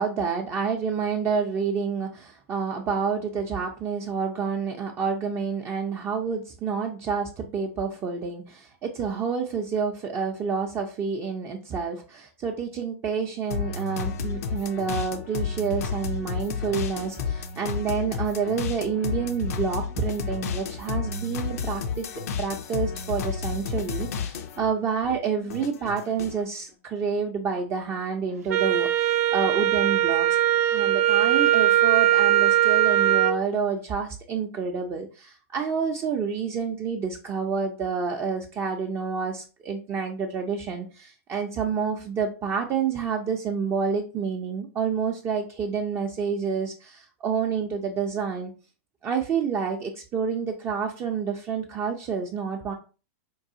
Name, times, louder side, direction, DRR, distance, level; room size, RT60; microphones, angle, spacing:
voice 1, 0.0-22.1 22.4-30.4 30.7-48.5 49.0-52.7, right 6 dB, 30° right, 2 dB, 0.5 m, -28 dB
sound 1, 13.5-24.7 25.0-26.4, left 6 dB, 75° left, 0.6 m, -31 dB
Wind instrument woodwind instrument, 28.5-33.4, right 12 dB, 75° right, 0.5 m, -20 dB
4.5 x 2.4 x 2.7 m, 0.34 s
hypercardioid pair, 125°, 8 cm